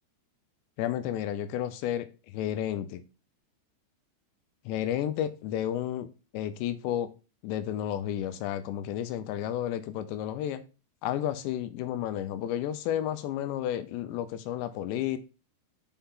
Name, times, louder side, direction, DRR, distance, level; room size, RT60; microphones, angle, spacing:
voice 1, 0.8-3.0 4.7-6.1 6.3-7.1 7.4-10.6 11.0-15.2, left 11 dB, 80° left, 2.8 m, -32 dB
5.8 x 5.6 x 3.6 m
omnidirectional pair, 5.2 m